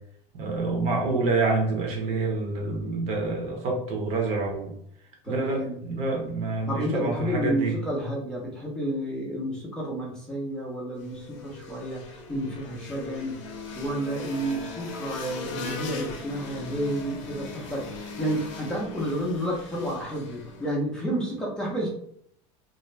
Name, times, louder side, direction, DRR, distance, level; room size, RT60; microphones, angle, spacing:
voice 1, 0.3-4.7 5.3-7.7, right 3 dB, 45° right, 1 dB, 0.8 m, -27 dB
voice 2, 5.2-5.8 6.7-13.3 13.8-21.9, right 1 dB, 5° left, -5 dB, 0.6 m, -30 dB
sound 1, 11.0-20.8, left 4 dB, 85° left, 0.6 m, -39 dB
2.5 x 2.1 x 3.1 m, 0.67 s
cardioid pair, 155°, 16 cm